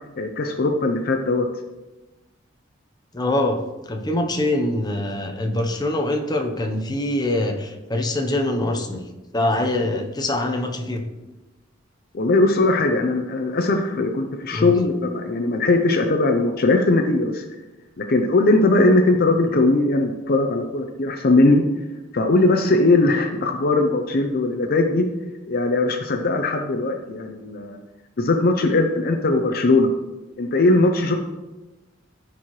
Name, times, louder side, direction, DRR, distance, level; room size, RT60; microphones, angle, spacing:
voice 1, 0.1-1.5 12.1-17.4 18.0-21.6 22.1-25.0 25.5-27.8 28.2-29.9 30.4-31.2, left 2 dB, 50° left, 4 dB, 0.6 m, -19 dB
voice 2, 3.1-3.6 3.9-9.0 9.3-11.0 14.5-14.7, left 1 dB, 20° left, 3 dB, 0.8 m, -24 dB
13.5 x 4.5 x 3.1 m, 1.1 s
head